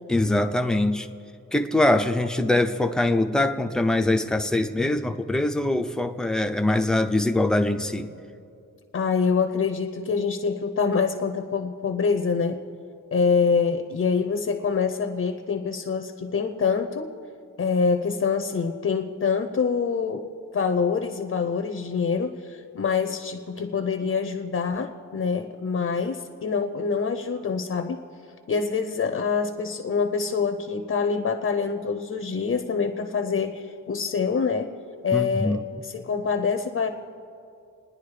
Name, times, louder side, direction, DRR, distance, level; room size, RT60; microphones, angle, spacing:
voice 1, 0.1-1.1 1.5-8.1 35.1-35.6, left 1 dB, ahead, 6 dB, 0.6 m, -23 dB
voice 2, 8.9-12.6 13.1-17.1 17.6-20.3 20.5-28.0 28.5-34.7 35.0-36.9, left 5 dB, 45° left, 6 dB, 0.8 m, -25 dB
28.5 x 10.0 x 5.0 m, 2.5 s
wide cardioid pair, 180°, 33 cm